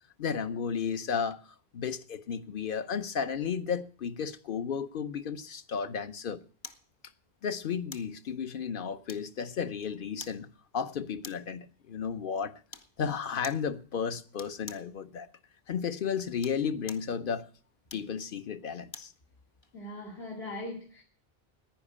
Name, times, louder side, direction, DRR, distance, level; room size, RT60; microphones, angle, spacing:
voice 1, 0.2-1.4 1.7-6.4 7.4-10.5 10.7-12.5 13.0-15.3 15.7-17.5 17.9-19.1, left 6 dB, 60° left, 1.0 m, -33 dB
sound 1, 6.6-6.9 7.9-8.2 9.1-9.5 10.2-10.4 11.2-11.6 12.7-12.9 13.4-13.7 14.4-14.9 16.3-17.1 17.9-19.2 19.6-19.7, left 3 dB, 30° left, 0.8 m, -47 dB
voice 2, 19.7-21.0, left 1 dB, 80° left, 2.8 m, -40 dB
10.5 x 10.0 x 8.4 m
omnidirectional pair, 1.0 m